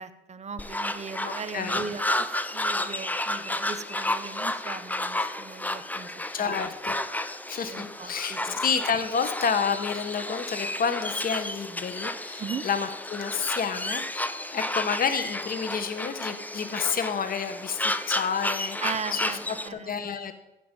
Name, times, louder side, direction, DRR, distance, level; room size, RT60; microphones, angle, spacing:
voice 1, 0.0-2.3 2.5-6.5 7.7-8.6 12.4-12.6 18.8-20.1, right 5 dB, 35° right, 10 dB, 1.1 m, -38 dB
sound 1, 0.6-19.7, left 1 dB, 10° left, 0.8 m, -32 dB
voice 2, 1.2-1.8 6.3-7.0 7.5-19.3 19.7-20.3, left 6 dB, 45° left, 9 dB, 1.3 m, -30 dB
15.5 x 5.3 x 9.1 m, 0.95 s
cardioid pair, 90°, 20 cm